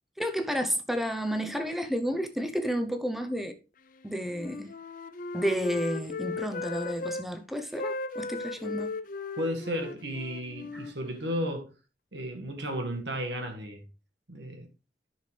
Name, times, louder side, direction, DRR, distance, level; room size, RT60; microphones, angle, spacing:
voice 1, 0.2-3.5 4.0-4.7 5.3-8.9 10.7-10.8, equal, ahead, 0.7 m, -31 dB
Wind instrument woodwind instrument, 4.3-7.3 7.7-11.6, left 3 dB, 50° left, 0.6 m, -37 dB
voice 2, 9.4-11.7 12.1-13.8 14.3-14.7, equal, 80° right, 1.8 m, -34 dB
10.5 x 6.1 x 3.3 m
head